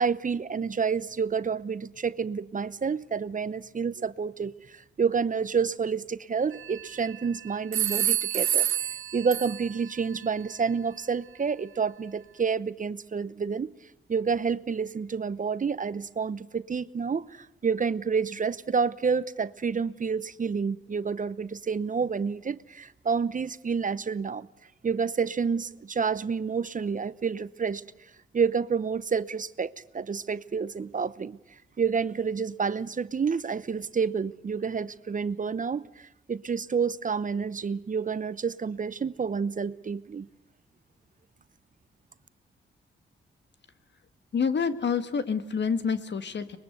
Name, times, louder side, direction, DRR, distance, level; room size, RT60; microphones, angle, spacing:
voice 1, 0.0-8.7 9.1-13.7 14.1-24.5 24.8-27.8 28.3-31.4 31.8-40.3, right 5 dB, 40° right, 0.8 m, -29 dB
sound 1, 6.5-7.2 7.7-9.9, right 11 dB, 80° right, 1.0 m, -28 dB
voice 2, 44.3-46.6, left 6 dB, 60° left, 1.7 m, -27 dB
24.0 x 21.5 x 8.0 m
cardioid pair, 65°, 20 cm